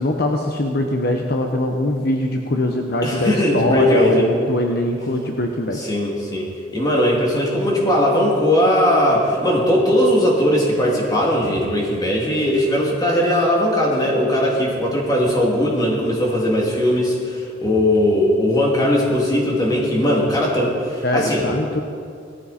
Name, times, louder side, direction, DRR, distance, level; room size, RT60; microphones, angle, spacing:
voice 1, 0.0-5.9 21.0-21.8, left 1 dB, 60° left, 3 dB, 1.0 m, -22 dB
voice 2, 3.0-4.3 5.7-21.5, left 1 dB, 20° left, -3 dB, 2.7 m, -19 dB
18.0 x 14.0 x 4.3 m, 2.3 s
head